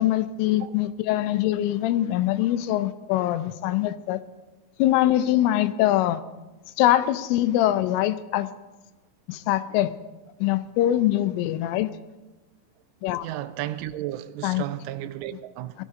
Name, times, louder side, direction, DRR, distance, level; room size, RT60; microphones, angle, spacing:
voice 1, 0.0-4.2 4.8-6.2 6.8-8.5 9.3-10.0 10.4-11.9 13.0-13.3 14.4-14.7 15.8-15.9, left 13 dB, 90° left, 3.2 m, -23 dB
voice 2, 13.2-15.8, right 13 dB, 85° right, 3.1 m, -33 dB
19.5 x 13.5 x 3.8 m
omnidirectional pair, 5.6 m